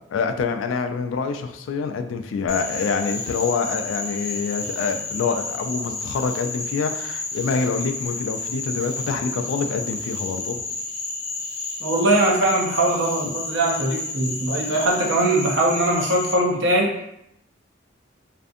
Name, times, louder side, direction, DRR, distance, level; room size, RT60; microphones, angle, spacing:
voice 1, 0.1-10.6, left 5 dB, 85° left, 7 dB, 0.3 m, -26 dB
Frog, 2.5-16.3, left 3 dB, 55° left, 0.7 m, -31 dB
voice 2, 11.8-16.9, right 1 dB, 70° right, 0 dB, 0.5 m, -21 dB
2.5 x 2.5 x 2.5 m, 0.79 s
head